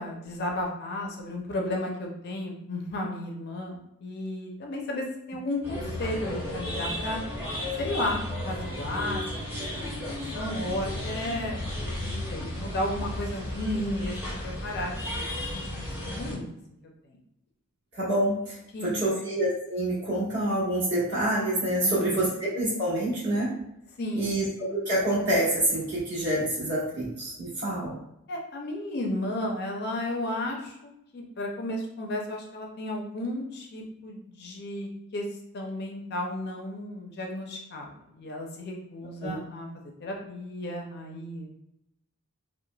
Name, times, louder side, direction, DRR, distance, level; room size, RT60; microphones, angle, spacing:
voice 1, 0.0-7.2 7.8-8.2 8.4-15.3 15.5-16.6 17.0-17.2 18.7-19.3 21.8-22.3 24.0-24.4 28.3-35.2 35.5-41.5, left 1 dB, 45° left, 1 dB, 0.4 m, -34 dB
sound 1, 5.6-16.3, left 1 dB, 10° right, 0.6 m, -34 dB
voice 2, 17.9-23.5 24.1-28.0 39.2-39.4, right 1 dB, 55° right, -8 dB, 1.4 m, -27 dB
3.1 x 2.1 x 2.2 m, 0.81 s
head